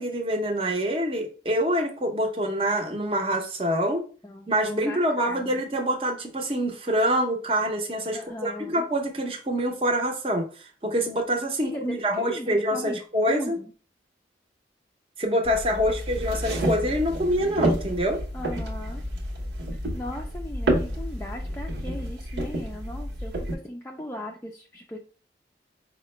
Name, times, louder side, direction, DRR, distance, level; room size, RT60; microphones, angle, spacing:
voice 1, 0.0-4.1 4.5-13.6 15.2-18.2, equal, 30° right, 2 dB, 0.7 m, -26 dB
voice 2, 4.2-5.6 8.1-8.9 11.6-13.7 18.3-19.0 19.7-25.0, equal, 15° left, 0 dB, 0.3 m, -38 dB
sound 1, 15.4-23.5, right 1 dB, 85° right, 0.9 m, -29 dB
4.7 x 2.1 x 3.1 m, 0.37 s
head